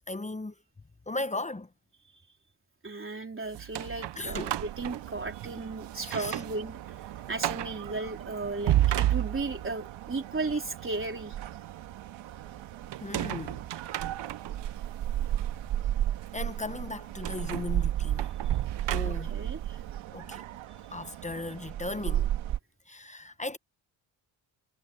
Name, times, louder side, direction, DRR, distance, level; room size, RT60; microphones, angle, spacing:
voice 1, 0.1-0.5 1.1-1.7 4.2-4.6 6.0-6.4 13.0-13.7 16.3-18.3 18.9-19.3 20.1-20.4 20.9-22.3 22.9-23.6, left 2 dB, 15° left, 1.0 m, -36 dB
voice 2, 2.8-6.9 7.3-11.4 19.0-19.8, right 3 dB, 25° right, 3.9 m, -35 dB
sound 1, 3.5-5.6 6.0-6.6 6.9-7.0 7.4-7.8 8.4-9.8 12.9-14.7 15.3-15.5 17.2-19.5, right 13 dB, 65° right, 0.9 m, -31 dB
sound 2, 4.2-22.6, right 12 dB, 85° right, 2.1 m, -35 dB
cardioid pair, 80°, 45 cm